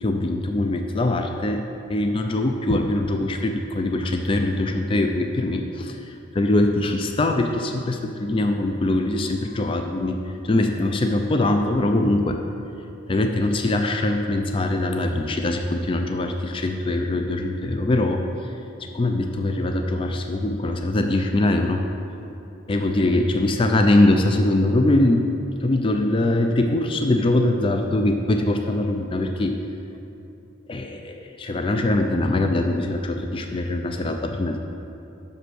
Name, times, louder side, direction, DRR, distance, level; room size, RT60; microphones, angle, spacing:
voice 1, 0.0-1.6 1.9-10.2 10.4-12.4 13.1-18.2 18.9-21.8 22.7-25.2 25.6-29.5 30.7-34.6, left 2 dB, 25° left, 4 dB, 0.3 m, -22 dB
6.3 x 5.3 x 6.2 m, 2.8 s
head